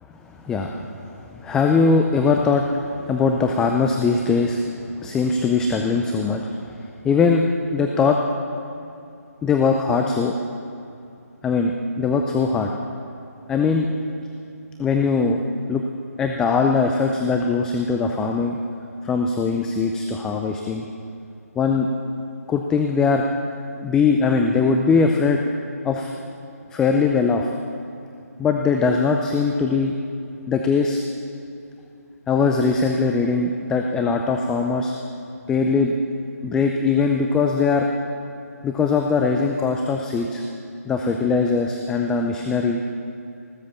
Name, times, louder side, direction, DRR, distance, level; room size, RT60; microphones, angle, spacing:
voice 1, 0.4-0.8 1.3-2.7 3.1-4.6 5.0-6.4 6.7-6.8 7.0-7.4 7.7-8.2 9.4-10.3 11.4-12.7 13.5-13.9 14.8-15.4 15.7-15.8 16.2-18.6 19.0-20.8 21.6-21.9 22.5-23.3 23.8-25.4 25.8-26.1 26.7-27.5 28.4-29.9 30.5-31.0 32.3-34.9 35.5-36.0 36.4-37.9 38.6-40.4 40.9-42.8, left 4 dB, 5° left, 3 dB, 0.4 m, -20 dB
18.5 x 7.7 x 7.0 m, 2.6 s
figure-of-eight pair, 150°, 9 cm